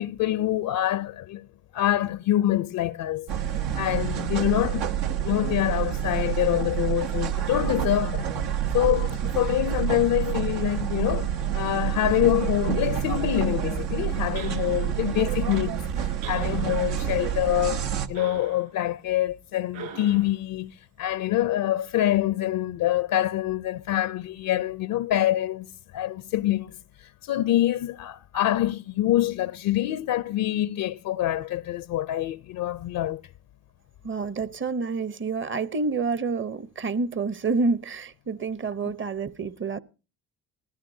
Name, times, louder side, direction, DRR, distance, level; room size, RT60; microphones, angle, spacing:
voice 1, 0.0-1.5 1.7-3.3 3.8-4.9 5.2-8.3 8.7-33.2, left 13 dB, 60° left, 0.5 m, -26 dB
sound 1, 3.3-18.1, right 10 dB, 80° right, 1.0 m, -28 dB
sound 2, 14.4-15.1 16.2-17.0 18.1-18.7 19.7-20.4, right 6 dB, 60° right, 4.3 m, -42 dB
voice 2, 34.0-39.8, right 4 dB, 30° right, 0.8 m, -28 dB
19.5 x 14.0 x 2.7 m
supercardioid pair, 70°, 39 cm